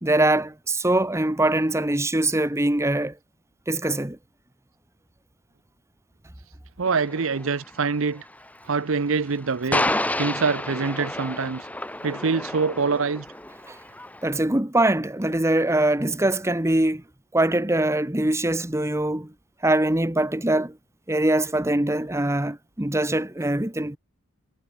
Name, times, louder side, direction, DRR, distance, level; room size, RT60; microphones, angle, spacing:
voice 1, 0.0-3.1 3.7-4.2 13.7-13.8 14.2-17.0 17.3-19.3 19.6-20.8 21.1-24.0, right 1 dB, 15° right, 1.2 m, -23 dB
voice 2, 6.8-8.2 8.7-9.9 10.2-11.7 12.0-13.3, right 4 dB, 65° right, 0.7 m, -25 dB
sound 1, 6.9-14.3, left 1 dB, 5° left, 3.0 m, -31 dB
head